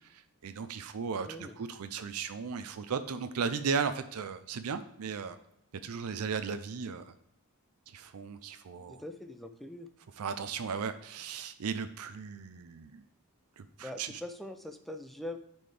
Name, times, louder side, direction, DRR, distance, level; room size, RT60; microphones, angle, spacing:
voice 1, 0.1-5.4 5.8-7.0 7.9-9.0 10.2-13.0 13.6-14.1, right 5 dB, 75° right, 10 dB, 0.5 m, -36 dB
voice 2, 1.3-1.6 8.8-9.9 13.8-15.4, left 1 dB, ahead, 7 dB, 0.5 m, -42 dB
9.7 x 4.3 x 3.3 m, 0.78 s
head